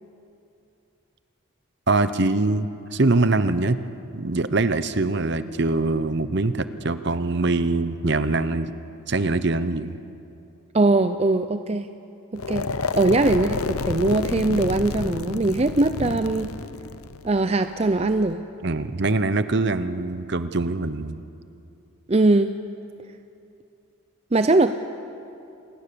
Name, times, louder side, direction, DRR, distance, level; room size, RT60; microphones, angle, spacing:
voice 1, 1.9-3.8 4.1-8.7 9.1-10.0 18.6-21.2, right 2 dB, 50° right, 12 dB, 0.8 m, -23 dB
voice 2, 10.7-11.9 12.3-12.7 12.9-16.5 17.2-18.4 22.1-22.5 24.3-24.7, right 2 dB, 30° right, 9 dB, 0.5 m, -21 dB
sound 1, 12.3-18.3, left 3 dB, 90° left, 0.8 m, -30 dB
27.5 x 20.0 x 6.9 m, 2.7 s
head